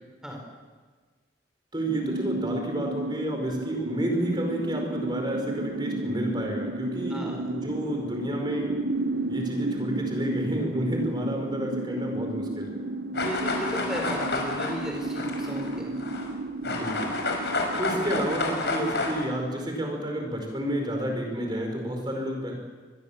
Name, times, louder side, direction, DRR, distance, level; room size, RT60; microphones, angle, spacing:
voice 1, 1.7-8.7 9.3-12.8 16.6-17.1 17.8-22.5, right 1 dB, 25° right, 2 dB, 4.9 m, -30 dB
sound 1, 1.9-21.4, right 2 dB, 75° right, 1.0 m, -33 dB
voice 2, 7.1-7.5 13.1-16.0, equal, 5° right, 0 dB, 4.7 m, -35 dB
sound 2, 13.1-16.3 16.6-19.3, left 3 dB, 70° left, 5.3 m, -30 dB
25.5 x 21.5 x 7.3 m, 1.4 s
head